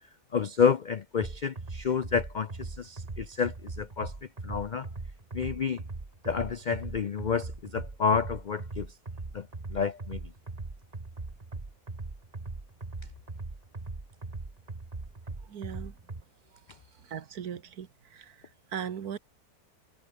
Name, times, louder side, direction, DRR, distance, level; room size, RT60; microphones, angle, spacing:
voice 1, 0.3-4.1 4.4-4.9 5.3-5.8 6.2-8.9 9.3-10.3, left 6 dB, 75° left, 0.4 m, -29 dB
sound 1, 1.2-16.2, right 3 dB, 25° right, 1.8 m, -40 dB
voice 2, 15.5-15.9 17.1-18.4 18.7-19.2, right 8 dB, 75° right, 1.7 m, -38 dB
omnidirectional pair, 1.6 m